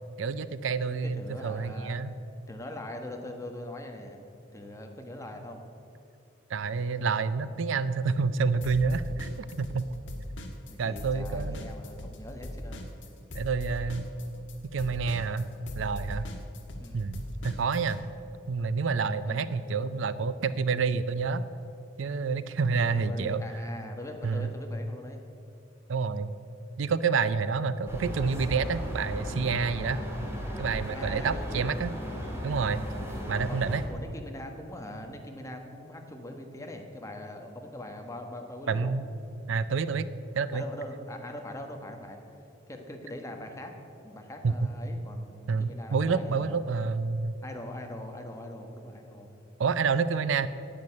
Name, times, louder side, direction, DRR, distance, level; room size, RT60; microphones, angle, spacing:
voice 1, 0.2-2.1 6.5-9.9 10.8-11.6 13.3-14.1 14.7-16.3 16.9-18.0 18.5-21.4 22.0-23.4 24.2-24.5 25.9-26.3 26.8-30.0 30.6-31.9 32.4-32.8 33.3-33.8 38.7-39.1 39.5-40.1 40.3-40.6 44.4-44.6 45.5-47.4 49.6-50.5, right 5 dB, 75° right, 15 dB, 0.5 m, -28 dB
voice 2, 1.0-2.0 2.5-4.2 4.5-5.6 10.7-12.9 16.8-17.1 19.3-19.5 22.9-25.2 30.9-31.7 33.4-38.9 40.5-42.2 42.7-43.7 44.0-46.6 47.4-49.3, left 1 dB, 15° left, 3 dB, 1.3 m, -41 dB
sound 1, 8.6-9.8 10.1-18.0, left 1 dB, 65° left, 1.6 m, -39 dB
sound 2, 27.9-33.8, equal, 15° right, 2.2 m, -36 dB
10.5 x 8.7 x 8.5 m, 2.6 s
head